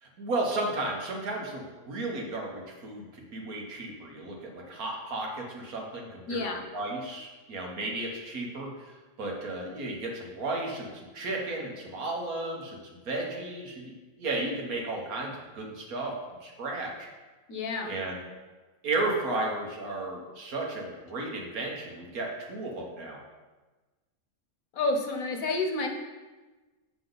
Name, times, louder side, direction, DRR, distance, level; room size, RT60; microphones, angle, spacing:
voice 1, 0.0-6.5 6.7-8.7 9.2-17.1 17.8-18.2 18.8-23.2, right 2 dB, 80° right, 0 dB, 1.7 m, -34 dB
voice 2, 6.3-6.6 17.5-18.0 24.7-25.9, left 3 dB, 70° left, 3 dB, 1.3 m, -29 dB
7.2 x 6.7 x 3.9 m, 1.2 s
omnidirectional pair, 1.5 m